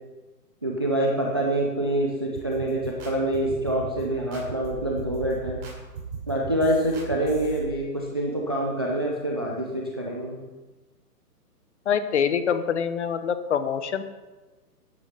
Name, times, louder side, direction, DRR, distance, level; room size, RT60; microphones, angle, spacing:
voice 1, 0.6-5.6 6.3-10.4, right 1 dB, 15° right, -1 dB, 0.5 m, -26 dB
sound 1, 2.3-7.6, right 4 dB, 35° right, 4.8 m, -38 dB
voice 2, 11.9-14.0, left 7 dB, 45° left, 11 dB, 1.1 m, -25 dB
12.5 x 10.0 x 5.6 m, 1.2 s
hypercardioid pair, 160°, 48 cm